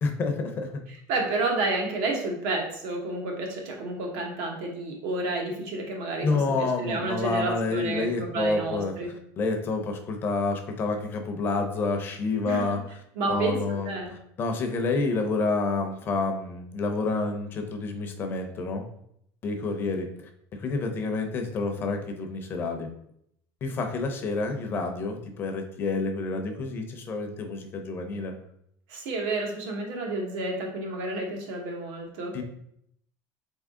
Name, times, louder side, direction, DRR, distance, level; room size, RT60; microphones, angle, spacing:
voice 1, 0.0-0.7 6.2-13.0 13.3-18.9 19.4-20.3 20.6-22.9 23.6-28.3 32.3-32.4, left 3 dB, 30° left, 5 dB, 0.5 m, -29 dB
voice 2, 1.1-6.3 6.6-9.1 12.4-12.8 13.2-14.1 28.9-32.3, right 2 dB, 85° right, 1 dB, 1.2 m, -30 dB
3.9 x 3.6 x 3.6 m, 0.73 s
cardioid pair, 175°, 8 cm